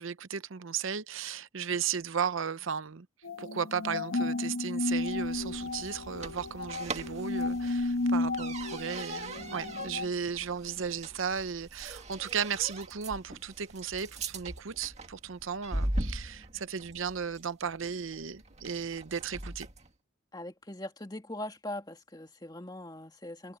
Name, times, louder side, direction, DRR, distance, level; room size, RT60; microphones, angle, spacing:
voice 1, 0.0-3.1 3.4-19.7, right 7 dB, 75° right, 0.7 m, -35 dB
sound 1, 3.2-10.1, left 2 dB, 80° left, 1.3 m, -33 dB
sound 2, 4.8-19.9, right 2 dB, 30° right, 2.1 m, -41 dB
voice 2, 20.3-23.6, left 1 dB, 20° left, 2.4 m, -41 dB
head